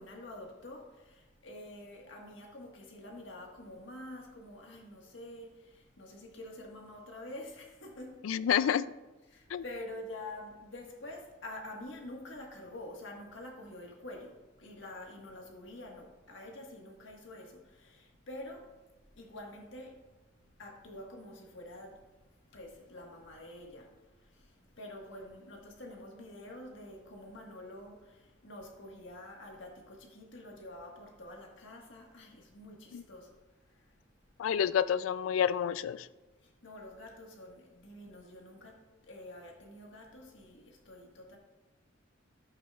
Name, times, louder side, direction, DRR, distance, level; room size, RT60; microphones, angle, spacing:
voice 1, 0.0-8.2 9.3-18.7 19.2-20.0 20.6-22.0 22.5-23.9 24.4-24.5 24.8-33.3 36.6-41.4, left 1 dB, 70° left, 1.6 m, -47 dB
voice 2, 8.2-8.9 9.5-9.6 32.9-33.0 34.4-36.1, left 8 dB, 90° left, 0.3 m, -29 dB
11.5 x 8.4 x 2.4 m
head